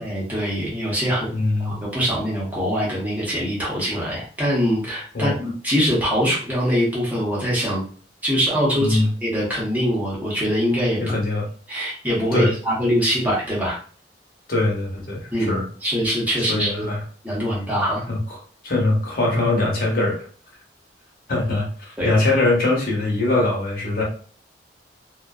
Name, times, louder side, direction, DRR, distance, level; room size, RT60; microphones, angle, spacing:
voice 1, 0.0-1.3 1.6-7.8 8.2-11.0 11.7-13.8 15.3-16.9 17.2-18.0 22.0-22.1, equal, 10° right, -6 dB, 0.9 m, -23 dB
voice 2, 1.3-1.8 5.1-5.4 8.8-9.1 11.0-11.4 12.3-12.5 14.5-15.6 16.5-17.0 18.1-18.2 18.6-20.2 21.3-24.0, left 2 dB, 50° left, -3 dB, 0.9 m, -22 dB
2.5 x 2.1 x 2.3 m, 0.43 s
head